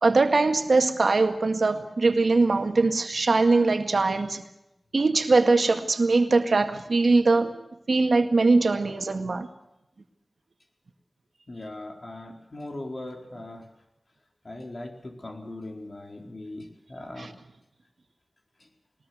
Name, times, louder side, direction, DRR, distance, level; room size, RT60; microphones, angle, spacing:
voice 1, 0.0-4.4 4.9-7.5 7.9-9.5 17.2-17.3, right 3 dB, 75° right, 6 dB, 1.9 m, -21 dB
voice 2, 11.5-13.6 14.4-17.3, left 1 dB, 50° left, 2 dB, 4.6 m, -39 dB
21.0 x 20.5 x 8.1 m, 0.87 s
wide cardioid pair, 75°, 0 cm